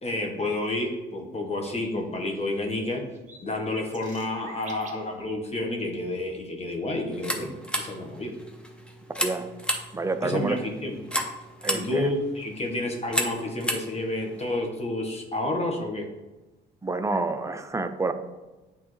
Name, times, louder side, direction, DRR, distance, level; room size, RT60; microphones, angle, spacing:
voice 1, 0.0-3.1 3.4-7.5 7.8-8.3 10.2-11.0 11.7-16.1, left 2 dB, 30° left, 2 dB, 1.2 m, -30 dB
sound 1, 1.6-2.0 2.4-2.5 3.0-5.1 7.2-7.3, right 3 dB, 40° right, 1.1 m, -47 dB
sound 2, 7.1-14.5, equal, 5° left, 0.9 m, -33 dB
voice 2, 9.2-9.5 9.9-10.6 11.6-12.1 16.8-18.1, right 3 dB, 15° right, 8 dB, 0.5 m, -28 dB
8.4 x 3.5 x 3.1 m, 1.1 s
cardioid pair, 90°, 20 cm